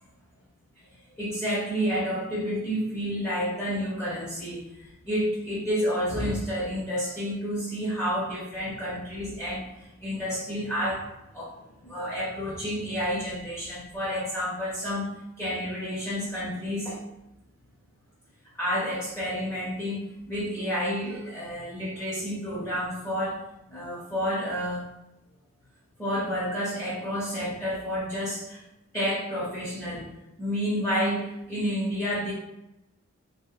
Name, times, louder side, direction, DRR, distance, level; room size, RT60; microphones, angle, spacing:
voice 1, 1.2-11.6 11.8-15.1 15.4-17.0 18.6-23.4 23.7-24.9 26.0-28.6 28.9-30.1 30.4-32.3, equal, 15° left, -8 dB, 0.5 m, -30 dB
2.7 x 2.1 x 2.3 m, 0.91 s
head